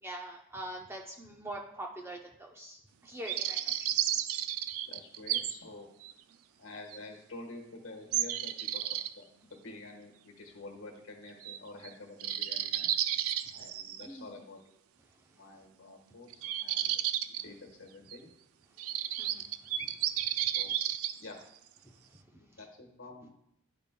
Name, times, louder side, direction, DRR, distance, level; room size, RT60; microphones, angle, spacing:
voice 1, 0.0-3.8 14.0-14.3 19.2-19.5 19.8-20.1 21.8-22.6, right 1 dB, 10° right, 1 dB, 0.6 m, -44 dB
sound 1, 3.3-5.5 6.0-6.1 6.9-7.0 8.1-9.1 11.4-11.6 11.8-11.9 12.2-14.1 16.3-17.4 18.1-18.2 18.8-21.2, right 11 dB, 80° right, 0.4 m, -32 dB
voice 2, 4.8-5.9 6.6-8.9 9.2-12.9 13.5-14.6 15.3-16.9 17.3-18.3 20.3-20.7 21.2-21.4 22.4-23.3, left 2 dB, 65° left, 1 dB, 1.3 m, -48 dB
11.5 x 5.1 x 2.2 m, 0.78 s
head